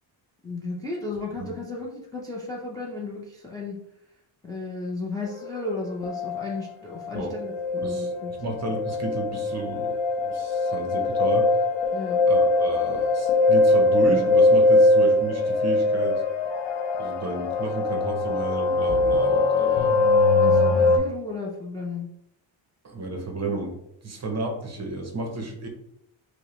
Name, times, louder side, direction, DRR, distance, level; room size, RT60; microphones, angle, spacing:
voice 1, 0.4-3.8 4.4-8.3 11.9-12.2 20.3-22.1, left 3 dB, 10° left, -3 dB, 0.4 m, -34 dB
sound 1, 5.5-5.6 6.0-6.7 7.0-21.0, left 2 dB, 70° left, 0.7 m, -22 dB
voice 2, 8.4-10.0 10.2-11.5 12.3-16.2 17.0-19.9 22.8-25.7, right 2 dB, 35° right, 3 dB, 0.7 m, -32 dB
5.2 x 2.1 x 3.0 m, 0.79 s
wide cardioid pair, 150°, 48 cm